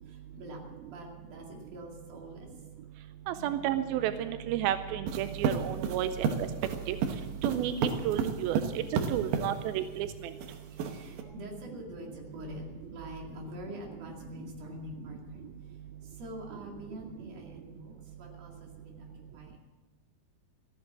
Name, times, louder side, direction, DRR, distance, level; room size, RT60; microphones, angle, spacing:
voice 1, 0.1-2.6 3.3-3.5 10.6-12.6 12.9-19.6, equal, 50° right, -1 dB, 3.4 m, -45 dB
voice 2, 3.3-6.1 6.9-7.0 7.4-7.7 8.0-8.6 9.1-10.1, right 12 dB, 90° right, 10 dB, 2.5 m, -31 dB
sound 1, 5.1-9.5 10.4-11.2, right 6 dB, 70° right, 2.6 m, -30 dB
14.5 x 9.9 x 7.4 m, 1.3 s
omnidirectional pair, 4.2 m